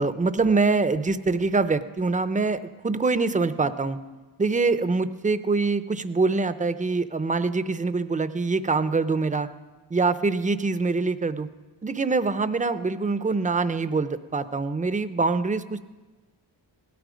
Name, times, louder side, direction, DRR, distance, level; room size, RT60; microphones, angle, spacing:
voice 1, 0.0-4.0 4.4-9.5 9.9-11.5 11.8-15.8, right 3 dB, 15° right, 12 dB, 0.6 m, -24 dB
17.5 x 13.0 x 5.1 m, 1.2 s
wide cardioid pair, 95°, 45 cm